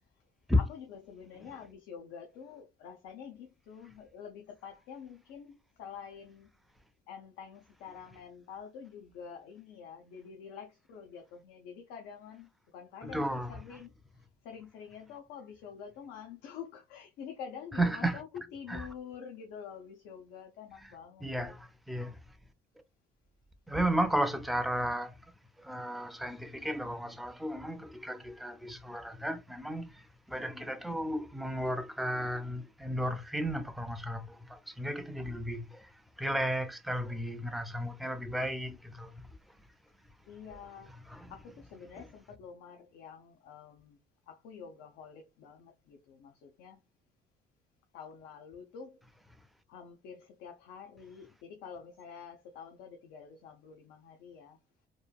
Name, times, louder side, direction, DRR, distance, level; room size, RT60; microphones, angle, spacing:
voice 1, 0.6-6.5 7.1-21.6 40.3-44.0 44.3-46.8 47.9-49.0 49.7-54.6, left 7 dB, 90° left, 0.6 m, -48 dB
voice 2, 13.0-13.5 17.8-18.2 18.7-18.9 21.2-22.2 23.7-25.1 25.6-30.0 30.3-35.9 36.2-39.1 41.1-41.3, equal, ahead, 0.4 m, -33 dB
3.0 x 2.3 x 2.3 m
cardioid pair, 110°, 17 cm